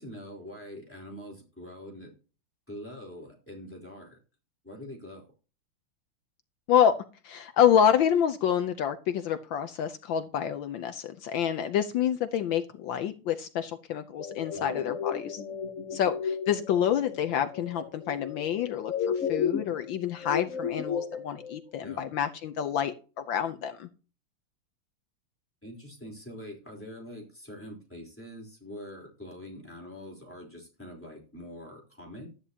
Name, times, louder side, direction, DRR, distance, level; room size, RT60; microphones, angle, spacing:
voice 1, 0.0-2.1 2.7-4.2 4.6-5.3 14.5-14.9 21.8-22.1 25.6-32.3, equal, 5° left, -1 dB, 3.6 m, -44 dB
voice 2, 7.2-15.4 15.9-23.9, left 9 dB, 70° left, 8 dB, 1.4 m, -27 dB
sound 1, 14.2-21.6, left 7 dB, 45° left, 1.2 m, -34 dB
12.5 x 9.8 x 2.8 m, 0.35 s
omnidirectional pair, 2.3 m